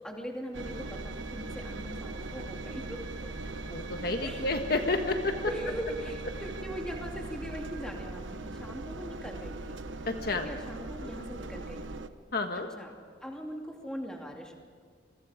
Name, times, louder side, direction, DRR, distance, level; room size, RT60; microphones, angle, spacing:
voice 1, 0.0-3.3 4.2-4.5 5.5-9.8 10.4-12.1 12.5-12.9 13.2-14.6, equal, 5° left, 1 dB, 2.5 m, -40 dB
Engine, 0.5-12.1, right 2 dB, 90° right, 1.1 m, -40 dB
voice 2, 3.7-5.4 10.1-10.5 12.3-12.7, left 3 dB, 55° left, 5 dB, 1.5 m, -30 dB
27.5 x 22.5 x 5.0 m, 2.1 s
head